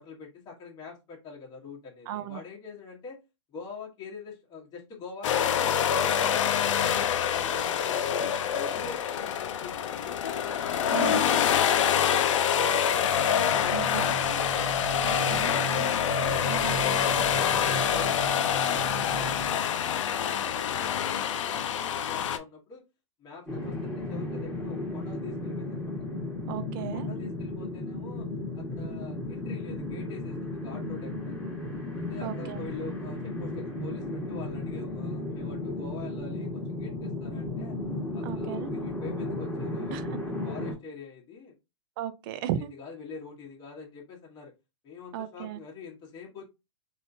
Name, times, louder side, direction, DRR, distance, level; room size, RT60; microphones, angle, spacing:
voice 1, 0.0-3.2 3.5-7.0 7.3-13.2 13.5-16.9 17.1-22.8 23.2-25.9 26.9-28.3 28.5-31.4 31.9-37.8 38.1-40.2 40.4-41.5 42.6-44.5 44.8-46.4, left 5 dB, 25° left, 1.1 m, -45 dB
voice 2, 2.1-2.4 10.9-11.3 13.7-14.1 15.0-15.5 16.5-16.8 26.5-27.1 32.2-32.7 38.2-38.7 39.9-40.0 42.0-42.7 45.1-45.6, right 11 dB, 45° right, 0.4 m, -35 dB
sound 1, 5.2-22.4, left 8 dB, 75° left, 0.5 m, -26 dB
sound 2, 13.5-19.5, right 4 dB, 25° right, 1.5 m, -37 dB
sound 3, 23.5-40.7, left 2 dB, 10° left, 1.3 m, -34 dB
3.4 x 2.6 x 2.5 m
hypercardioid pair, 130°, 16 cm